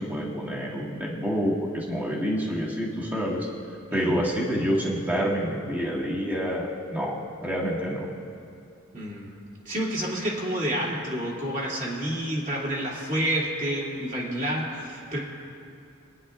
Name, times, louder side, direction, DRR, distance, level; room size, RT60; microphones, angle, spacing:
voice 1, 0.0-3.5 3.9-7.2 7.4-8.1, equal, 10° right, -5 dB, 1.7 m, -27 dB
voice 2, 3.9-4.2 8.9-9.3 9.6-15.2, right 1 dB, 40° right, -5 dB, 2.5 m, -29 dB
26.5 x 9.8 x 2.4 m, 2.6 s
head